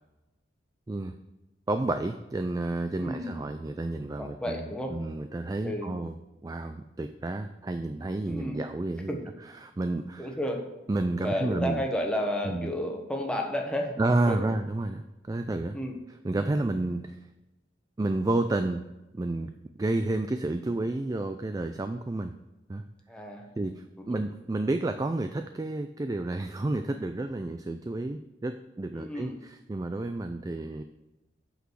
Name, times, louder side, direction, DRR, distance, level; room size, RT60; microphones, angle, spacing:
voice 1, 1.7-6.1 6.4-10.3 10.9-11.8 12.4-12.7 14.0-15.8 16.2-17.2 18.0-18.8 19.1-19.5 19.8-22.3 22.7-22.8 23.6-30.8, right 2 dB, 20° right, 8 dB, 0.3 m, -30 dB
voice 2, 2.9-3.3 4.2-4.9 5.6-5.9 8.2-8.6 9.1-9.2 10.2-10.6 11.2-14.0 14.3-14.4 15.7-15.9 23.1-23.5 24.1-24.2 28.9-29.3, equal, 5° left, 1 dB, 1.1 m, -31 dB
8.3 x 6.2 x 4.7 m, 1.0 s
head